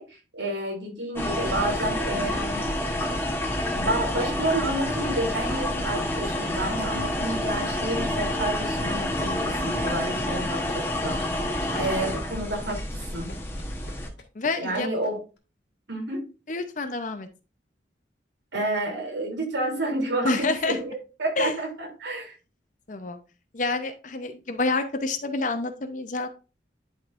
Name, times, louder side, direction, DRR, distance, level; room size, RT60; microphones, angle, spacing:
voice 1, 0.0-2.7 3.7-13.3 14.6-15.2 15.9-16.2 18.5-22.4, right 1 dB, 85° right, 0 dB, 3.0 m, -30 dB
sound 1, 1.2-14.1, left 1 dB, 15° left, 1.0 m, -28 dB
sound 2, 10.0-15.1 15.4-15.5, left 2 dB, 75° left, 1.8 m, -43 dB
voice 2, 14.4-14.9 16.5-17.3 20.2-20.8 21.4-21.5 22.9-23.2 23.5-26.3, left 3 dB, 45° left, 8 dB, 0.7 m, -28 dB
11.0 x 5.2 x 2.5 m, 0.32 s
head